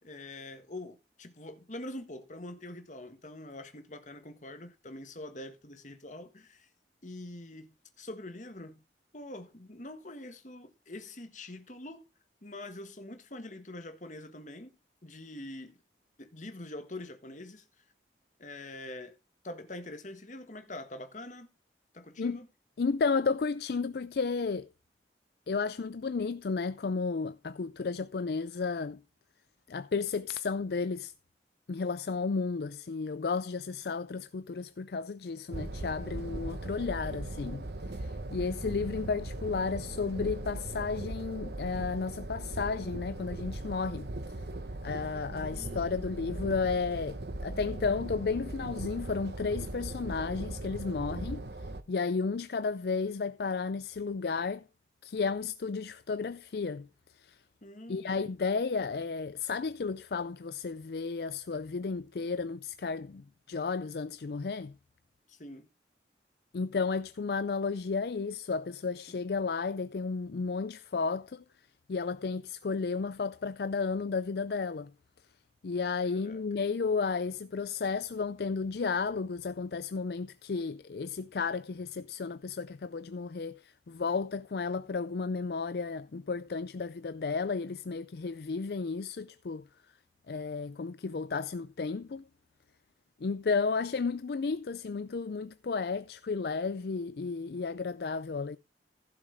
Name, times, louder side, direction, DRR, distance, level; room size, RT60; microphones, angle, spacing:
voice 1, 0.0-6.7 7.0-8.8 9.1-12.1 12.4-14.7 15.0-15.8 16.2-17.6 18.4-19.2 19.4-21.5 21.9-22.5 45.3-46.0 57.6-58.2 65.3-65.7 69.1-69.2 76.0-76.4, left 1 dB, 45° left, 1.7 m, -44 dB
voice 2, 22.8-24.7 25.5-29.0 29.7-31.1 31.7-37.7 37.9-44.1 44.8-51.4 51.9-54.6 55.0-56.9 57.2-57.4 57.9-64.7 66.5-71.4 71.9-74.9 75.6-89.6 90.3-92.2 93.2-98.6, left 4 dB, 60° left, 0.4 m, -33 dB
sound 1, 35.5-51.8, right 2 dB, 70° right, 1.1 m, -39 dB
15.5 x 6.6 x 3.4 m
head